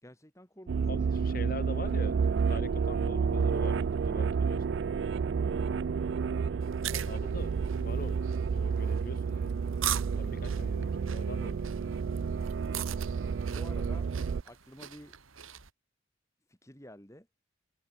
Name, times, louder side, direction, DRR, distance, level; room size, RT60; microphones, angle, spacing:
voice 1, 0.0-1.2 5.4-5.8 10.0-10.7 12.4-13.0 13.4-14.1 14.4-15.1 16.5-17.3, equal, 15° left, 4.9 m, -53 dB
sound 1, 0.7-14.4, right 5 dB, 60° right, 0.3 m, -30 dB
voice 2, 0.9-2.2 2.5-4.8 6.9-8.2 8.5-9.6 10.2-11.7, left 1 dB, 45° left, 5.9 m, -43 dB
sound 2, 6.6-15.7, right 11 dB, 85° right, 2.5 m, -41 dB
head